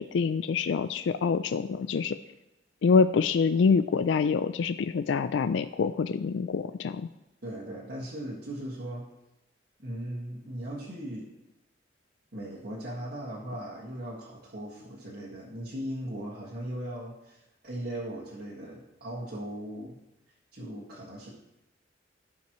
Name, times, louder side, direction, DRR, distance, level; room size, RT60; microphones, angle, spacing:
voice 1, 0.0-2.2 2.8-7.1, left 5 dB, 70° left, 12 dB, 0.3 m, -26 dB
voice 2, 7.4-9.1 9.8-11.3 12.3-19.9 20.5-21.3, right 1 dB, 55° right, -7 dB, 1.8 m, -38 dB
16.0 x 5.7 x 3.1 m, 0.92 s
head